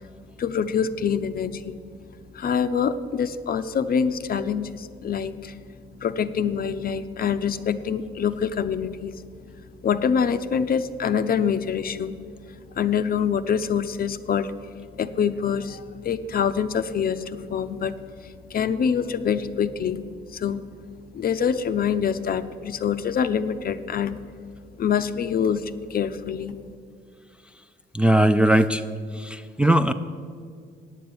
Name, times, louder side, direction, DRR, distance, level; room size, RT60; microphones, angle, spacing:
voice 1, 0.4-1.7 2.3-5.6 6.0-9.1 9.8-12.2 12.8-14.5 15.0-18.0 18.2-20.0 20.3-20.6 21.1-24.2 24.8-26.6, left 7 dB, 50° left, 11 dB, 0.6 m, -25 dB
voice 2, 27.9-28.8 29.1-29.9, right 1 dB, 5° right, 7 dB, 0.4 m, -19 dB
9.1 x 7.4 x 8.6 m, 2.1 s
cardioid pair, 90°, 20 cm